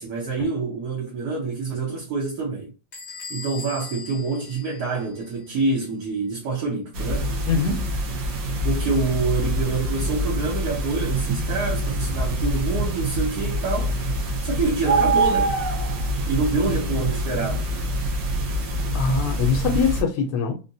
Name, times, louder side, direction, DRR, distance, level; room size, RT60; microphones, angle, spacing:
voice 1, 0.0-2.7 3.3-7.3 8.6-13.9 14.4-15.6 16.3-17.7, right 4 dB, 70° right, 1.2 m, -26 dB
Bell / Squeak, 2.9-5.4, left 4 dB, 40° left, 0.6 m, -39 dB
sound 1, 6.9-20.0, right 1 dB, 90° right, 1.3 m, -25 dB
voice 2, 7.5-7.8 18.9-20.5, left 5 dB, 85° left, 1.2 m, -22 dB
3.7 x 2.1 x 2.6 m
omnidirectional pair, 1.8 m